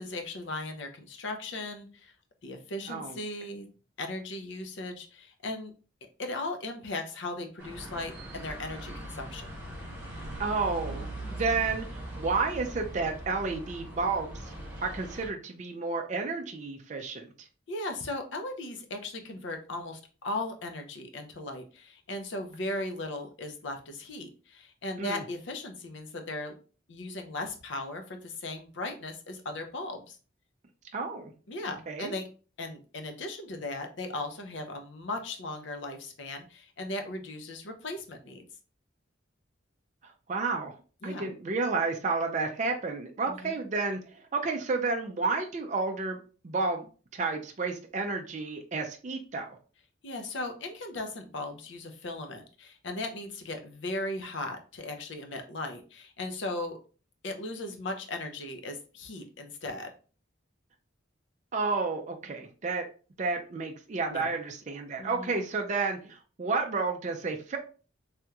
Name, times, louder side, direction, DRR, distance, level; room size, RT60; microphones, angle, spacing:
voice 1, 0.0-2.1 2.4-3.7 4.0-5.7 6.2-9.5 17.7-26.6 26.9-30.2 31.5-32.3 32.6-38.4 41.0-41.3 43.3-43.6 50.0-56.8 57.2-59.9 64.1-64.3 65.0-65.4, left 2 dB, 65° left, 5 dB, 0.6 m, -37 dB
voice 2, 2.9-3.2 10.4-11.9 12.1-14.5 14.8-17.3 25.0-25.2 30.9-31.3 31.9-32.2 40.0-40.7 41.0-46.2 46.4-46.9 47.1-49.5 61.5-62.8 63.2-67.6, right 4 dB, 35° right, 3 dB, 0.4 m, -31 dB
sound 1, 7.6-15.3, right 1 dB, 15° right, 1.4 m, -40 dB
3.4 x 2.9 x 2.3 m, 0.37 s
head